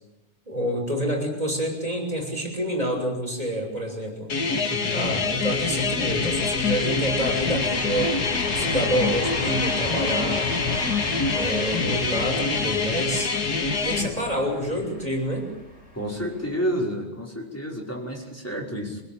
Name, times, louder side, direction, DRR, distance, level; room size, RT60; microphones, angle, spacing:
voice 1, 0.5-4.3 4.9-8.2 8.5-10.5 11.3-13.3 13.8-15.5, equal, 10° right, 1 dB, 6.7 m, -27 dB
sound 1, 4.3-14.1, left 4 dB, 35° left, 2.0 m, -25 dB
sound 2, 4.6-16.6, left 1 dB, 20° left, 5.8 m, -36 dB
voice 2, 4.7-5.2 15.9-19.0, equal, 5° left, -1 dB, 5.3 m, -30 dB
26.5 x 17.0 x 9.0 m, 0.91 s
omnidirectional pair, 3.4 m